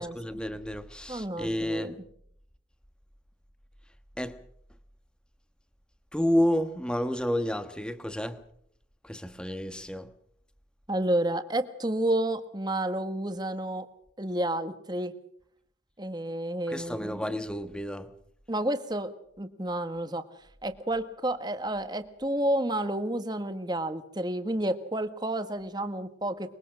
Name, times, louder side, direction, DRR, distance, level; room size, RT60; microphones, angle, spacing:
voice 1, 0.0-1.9 4.2-4.4 6.1-8.4 9.0-10.1 16.7-18.1, equal, 5° left, 1.2 m, -30 dB
voice 2, 1.1-1.9 10.9-13.9 14.2-15.1 16.0-17.3 18.5-19.1 19.4-20.2 20.6-26.6, right 1 dB, 25° right, 1.5 m, -30 dB
23.5 x 22.5 x 6.3 m
head